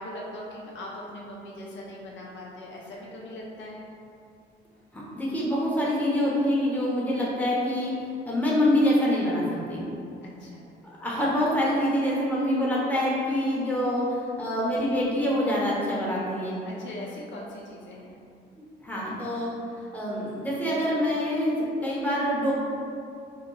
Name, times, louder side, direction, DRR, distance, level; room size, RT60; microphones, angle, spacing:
voice 1, 0.0-3.9 10.2-10.6 16.6-18.2, left 1 dB, 65° left, -3 dB, 0.6 m, -40 dB
voice 2, 4.9-9.8 11.0-16.5 18.8-19.5 19.8-22.5, left 1 dB, 10° left, -6 dB, 0.8 m, -26 dB
3.0 x 2.2 x 3.7 m, 2.5 s
cardioid pair, 90°, 20 cm